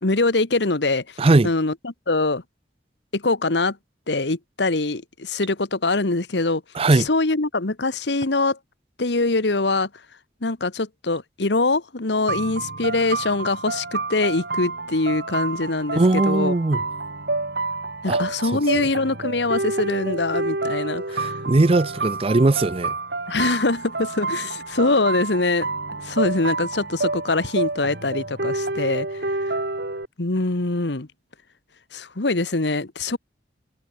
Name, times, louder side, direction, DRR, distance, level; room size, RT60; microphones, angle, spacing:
voice 1, 0.0-1.0 1.4-2.4 3.1-3.8 4.1-6.6 6.9-8.6 9.0-9.9 10.4-16.5 18.0-21.3 23.3-25.7 26.0-29.1 30.2-31.1 31.9-33.2, left 3 dB, 70° left, 1.4 m, -23 dB
voice 2, 1.2-1.5 6.7-7.1 16.0-16.8 18.1-18.2 21.1-22.9, right 2 dB, 30° right, 0.5 m, -19 dB
sound 1, 12.3-30.0, right 3 dB, 60° right, 3.4 m, -28 dB
head